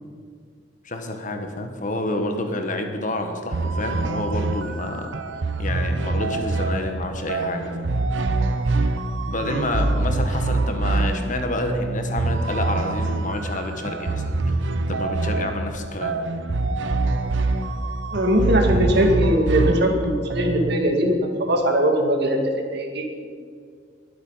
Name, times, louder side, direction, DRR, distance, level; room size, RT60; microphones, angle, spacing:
voice 1, 0.8-5.1 5.6-7.9 9.3-14.6 14.9-16.1, left 1 dB, 45° left, 5 dB, 1.5 m, -29 dB
sound 1, 3.5-20.8, right 2 dB, 80° right, 0.8 m, -25 dB
voice 2, 18.1-22.4 22.7-23.3, equal, 60° right, 3 dB, 2.1 m, -21 dB
21.0 x 8.2 x 5.8 m, 2.1 s
head